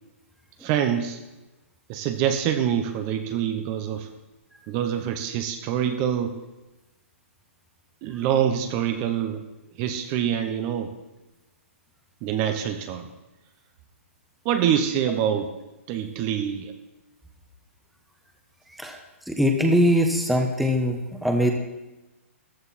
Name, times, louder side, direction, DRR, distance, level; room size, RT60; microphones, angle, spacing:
voice 1, 0.6-1.2 1.9-4.1 4.7-6.3 8.0-9.4 9.8-10.9 12.2-13.0 14.4-15.5 15.9-16.7, right 9 dB, 30° right, 8 dB, 1.1 m, -25 dB
voice 2, 19.3-21.5, equal, ahead, 3 dB, 1.2 m, -21 dB
14.5 x 12.5 x 4.4 m, 1.1 s
hypercardioid pair, 155°, 8 cm